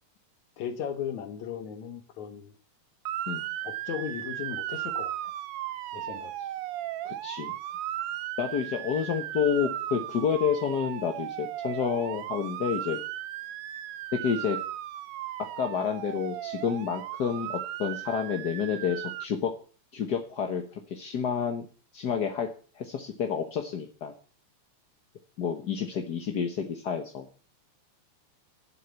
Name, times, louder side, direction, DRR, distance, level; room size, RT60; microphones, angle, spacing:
voice 1, 0.6-2.5 3.6-5.1 5.9-6.3, left 8 dB, 70° left, 8 dB, 2.5 m, -36 dB
Motor vehicle (road) / Siren, 3.0-19.3, right 13 dB, 85° right, 1.2 m, -36 dB
voice 2, 7.0-7.5 8.4-13.0 14.1-14.6 15.6-19.5 19.9-21.7 21.9-22.5 22.8-24.1 25.4-27.3, left 7 dB, 55° left, 4 dB, 1.2 m, -29 dB
11.0 x 7.9 x 8.3 m, 0.39 s
omnidirectional pair, 3.5 m